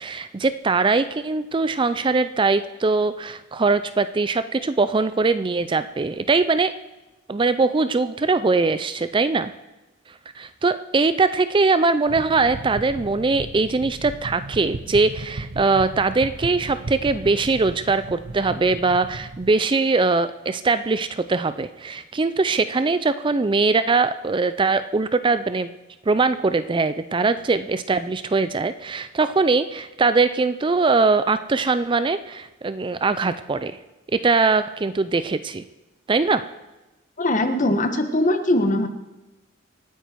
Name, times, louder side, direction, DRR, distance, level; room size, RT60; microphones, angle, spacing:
voice 1, 0.0-6.7 7.3-9.5 10.4-25.7 26.1-33.8 34.1-35.6 36.1-36.4, right 3 dB, 25° right, 12 dB, 0.4 m, -21 dB
sound 1, 12.1-19.5, right 2 dB, 85° right, 1.1 m, -36 dB
voice 2, 37.2-38.9, left 1 dB, 40° left, 7 dB, 1.5 m, -21 dB
26.0 x 9.1 x 4.6 m, 1.1 s
head